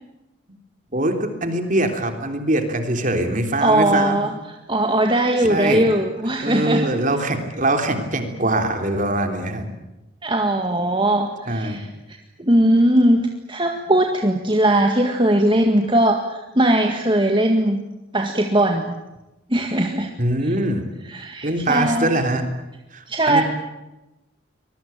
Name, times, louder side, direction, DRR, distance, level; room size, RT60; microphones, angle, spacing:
voice 1, 0.9-4.2 5.4-5.8 6.4-9.7 11.5-11.8 20.2-20.8 21.4-22.5 22.9-23.4, right 1 dB, 45° right, 6 dB, 3.5 m, -22 dB
voice 2, 3.6-4.3 4.7-6.9 10.2-17.8 18.1-18.9 19.5-20.1 21.1-22.1 23.1-23.4, right 1 dB, 25° right, 3 dB, 1.9 m, -19 dB
24.5 x 21.5 x 9.0 m, 0.98 s
head